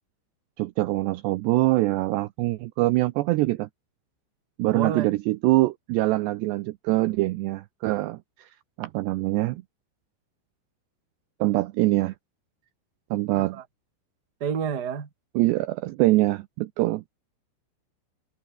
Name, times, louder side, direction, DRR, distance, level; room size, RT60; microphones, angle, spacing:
voice 1, 0.6-3.7 4.6-8.5 8.8-9.6 11.4-12.1 13.1-13.6 15.4-17.0, right 19 dB, 85° right, 2.4 m, -24 dB
voice 2, 4.7-5.1 13.4-13.6 14.4-15.1, right 7 dB, 45° right, 1.3 m, -29 dB
omnidirectional pair, 5.7 m